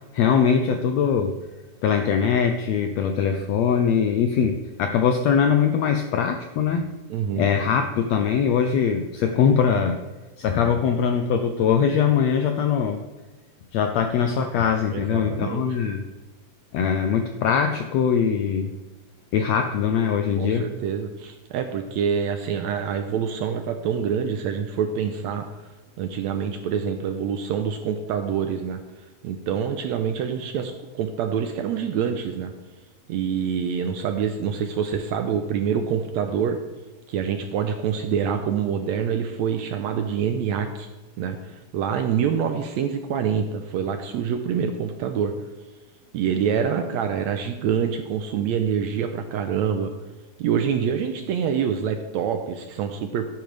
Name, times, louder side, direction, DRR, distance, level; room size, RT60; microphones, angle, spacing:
voice 1, 0.1-1.4 1.8-6.9 7.4-10.0 10.4-13.0 13.7-16.1 16.7-18.7 19.3-20.7, left 7 dB, 85° left, 6 dB, 1.5 m, -22 dB
voice 2, 7.1-7.5 14.9-15.7 20.4-25.4 26.0-28.8 29.2-32.5 33.1-36.6 37.1-40.9 41.2-45.3 46.1-49.9 50.4-53.3, right 7 dB, 75° right, 7 dB, 1.7 m, -26 dB
12.5 x 10.5 x 3.3 m, 1.2 s
omnidirectional pair, 3.7 m